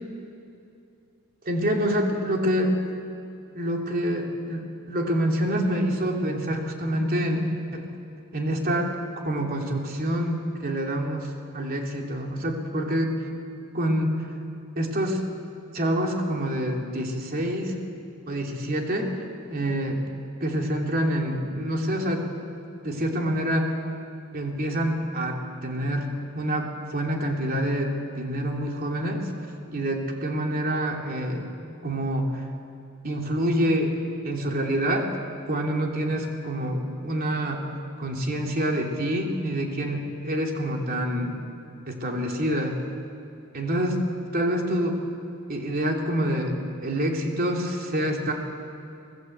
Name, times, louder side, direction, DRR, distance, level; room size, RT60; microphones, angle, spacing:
voice 1, 1.4-2.8 3.5-7.9 8.3-9.0 9.2-13.3 13.7-14.2 14.7-15.2 15.7-17.8 18.3-19.2 19.5-20.0 20.4-22.3 22.8-23.8 24.3-29.3 29.7-31.5 31.8-32.5 33.0-33.9 34.2-35.1 35.5-37.7 38.0-41.4 41.9-42.8 43.5-44.0 44.3-45.0 45.5-46.6 46.8-48.3, equal, 45° right, 1 dB, 3.2 m, -26 dB
25.0 x 18.5 x 8.1 m, 2.7 s
head